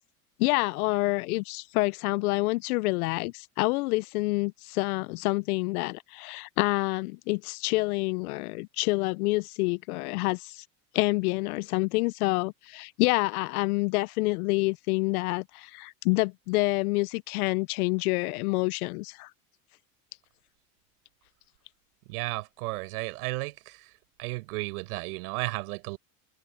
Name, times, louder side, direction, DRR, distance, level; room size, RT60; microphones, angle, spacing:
voice 1, 0.4-10.6 10.9-19.3, left 23 dB, 75° left, 0.7 m, -27 dB
voice 2, 22.1-23.9 24.2-26.0, right 22 dB, 75° right, 5.3 m, -34 dB
supercardioid pair, 105°, 46 cm